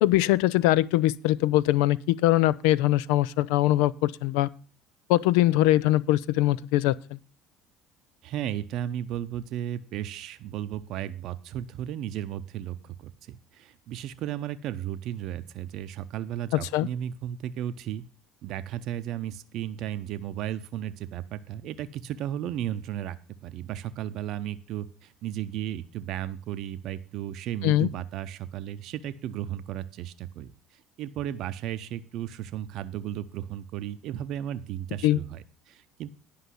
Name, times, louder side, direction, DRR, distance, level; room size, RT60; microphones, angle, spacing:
voice 1, 0.0-4.5 5.1-7.2 16.5-16.9 27.6-27.9 35.0-35.2, left 15 dB, 75° left, 0.4 m, -22 dB
voice 2, 8.2-18.0 18.4-23.2 23.4-36.1, right 11 dB, 60° right, 0.7 m, -34 dB
10.0 x 5.5 x 7.7 m
hypercardioid pair, 70°, 0 cm